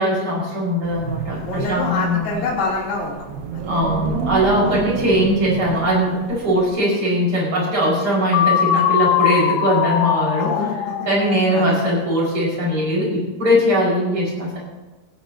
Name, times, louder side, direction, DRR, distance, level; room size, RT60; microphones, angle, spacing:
voice 1, 0.0-2.5 3.6-10.5 11.0-14.6, equal, 25° right, -4 dB, 6.4 m, -20 dB
Wind, 0.8-6.7, right 6 dB, 75° right, 2.4 m, -30 dB
voice 2, 1.4-3.3 3.5-3.6 4.6-4.8 8.7-8.8 10.4-11.8, left 3 dB, 45° left, -4 dB, 4.9 m, -26 dB
sound 1, 8.3-12.2, left 10 dB, 85° left, 2.3 m, -21 dB
18.5 x 16.0 x 3.0 m, 1.2 s
omnidirectional pair, 5.9 m